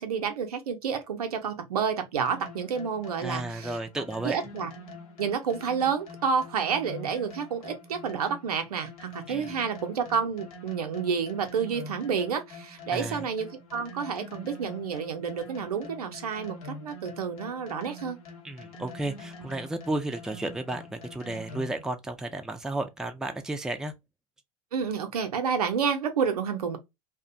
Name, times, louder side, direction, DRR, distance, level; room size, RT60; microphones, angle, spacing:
voice 1, 0.0-4.7 5.2-18.2 24.7-26.8, right 6 dB, 80° right, 0.5 m, -30 dB
sound 1, 2.3-21.9, left 2 dB, 75° left, 0.8 m, -45 dB
voice 2, 3.2-4.4 9.3-9.5 12.9-13.2 18.4-23.9, right 2 dB, 5° right, 0.4 m, -33 dB
2.4 x 2.1 x 2.6 m
hypercardioid pair, 80°, 19 cm